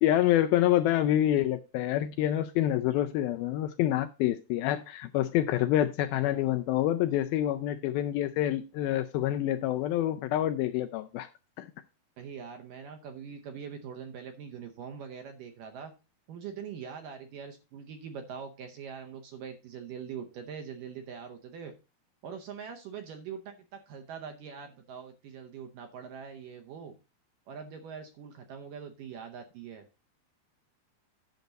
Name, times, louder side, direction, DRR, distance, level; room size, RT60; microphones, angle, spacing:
voice 1, 0.0-11.3 11.6-11.7, left 13 dB, 80° left, 8 dB, 2.2 m, -27 dB
voice 2, 12.2-15.9 16.3-21.8 22.2-27.0 27.5-29.9, right 7 dB, 70° right, 5 dB, 2.1 m, -43 dB
10.5 x 6.7 x 4.0 m, 0.29 s
omnidirectional pair, 4.7 m